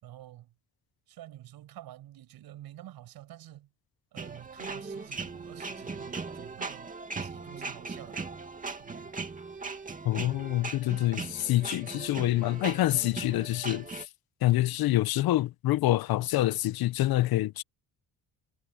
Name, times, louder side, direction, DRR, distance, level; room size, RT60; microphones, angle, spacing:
voice 1, 0.0-0.5 1.1-3.7 4.1-6.9 7.2-8.3 8.8-9.1, right 13 dB, 90° right, 6.4 m, -49 dB
sound 1, 4.2-14.0, right 4 dB, 20° right, 2.4 m, -39 dB
voice 2, 10.0-14.1 14.4-17.6, left 15 dB, 80° left, 0.9 m, -26 dB
cardioid pair, 125°, 36 cm